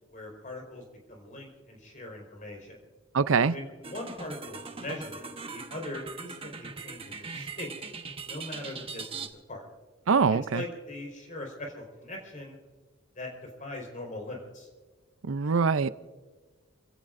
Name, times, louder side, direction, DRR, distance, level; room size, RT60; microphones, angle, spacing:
voice 1, 0.1-2.8 3.5-7.7 8.2-9.6 10.3-12.6 13.1-14.7, left 1 dB, 40° left, 4.7 m, -41 dB
voice 2, 3.1-3.5 10.1-10.6 15.3-15.9, right 5 dB, 85° right, 0.6 m, -23 dB
sound 1, 3.8-9.3, right 4 dB, 30° right, 1.0 m, -41 dB
29.5 x 16.5 x 2.6 m
head